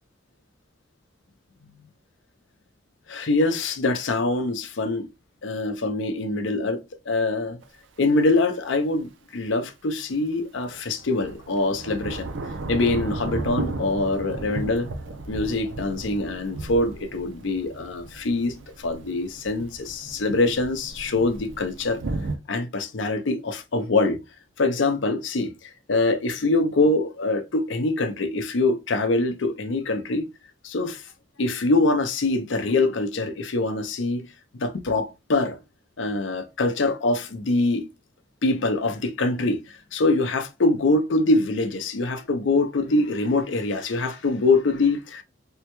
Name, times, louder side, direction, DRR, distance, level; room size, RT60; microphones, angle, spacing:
voice 1, 3.1-5.1 5.4-7.6 8.0-12.3 12.7-14.9 15.3-22.0 22.5-24.2 24.6-30.2 30.6-31.0 31.4-34.3 34.5-35.6 36.0-37.9 38.4-45.2, left 2 dB, 75° left, 0.6 m, -24 dB
Thunder / Rain, 7.6-7.7 10.6-22.4, right 2 dB, 80° right, 0.5 m, -35 dB
3.5 x 2.2 x 2.9 m
head